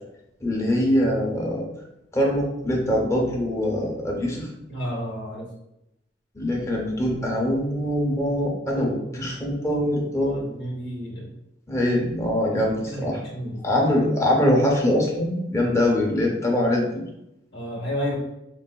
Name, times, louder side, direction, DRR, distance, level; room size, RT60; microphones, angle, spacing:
voice 1, 0.4-1.7 2.1-4.5 6.3-10.4 11.7-13.2 13.6-17.0, left 1 dB, 15° left, -1 dB, 0.6 m, -23 dB
voice 2, 4.7-5.5 9.0-11.3 12.8-13.8 17.5-18.1, equal, 70° left, -3 dB, 0.7 m, -32 dB
3.9 x 2.1 x 2.2 m, 0.84 s
head